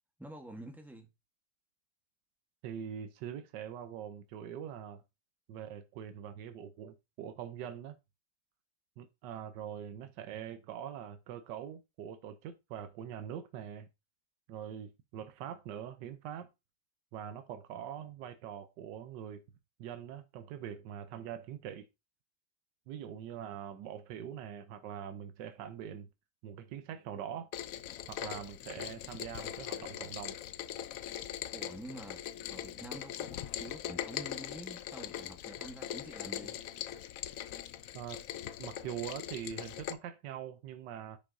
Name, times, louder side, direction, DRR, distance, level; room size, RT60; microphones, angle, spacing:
voice 1, 0.2-1.1 31.5-32.2 32.5-36.6, right 1 dB, ahead, 0.7 m, -48 dB
voice 2, 2.6-5.0 5.5-8.0 9.0-13.9 14.5-16.5 17.1-19.4 19.8-21.9 22.9-26.1 26.4-27.5 28.1-30.4 37.9-38.2 38.6-41.2, right 9 dB, 90° right, 1.3 m, -43 dB
Rain, 27.5-39.9, left 11 dB, 70° left, 0.8 m, -41 dB
10.0 x 5.4 x 2.6 m
omnidirectional pair, 1.9 m